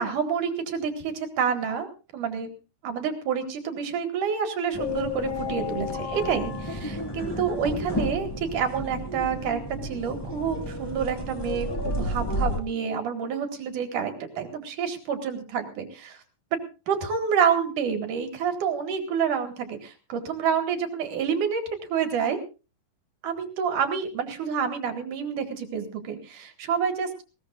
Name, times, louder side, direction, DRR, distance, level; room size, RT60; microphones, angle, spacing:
voice 1, 0.0-2.5 2.8-16.2 16.9-21.6 21.9-22.4 23.2-27.1, right 7 dB, 70° right, 6 dB, 3.3 m, -28 dB
sound 1, 4.7-12.6, left 2 dB, 10° left, 1.2 m, -31 dB
20.0 x 18.5 x 2.5 m, 0.32 s
omnidirectional pair, 3.9 m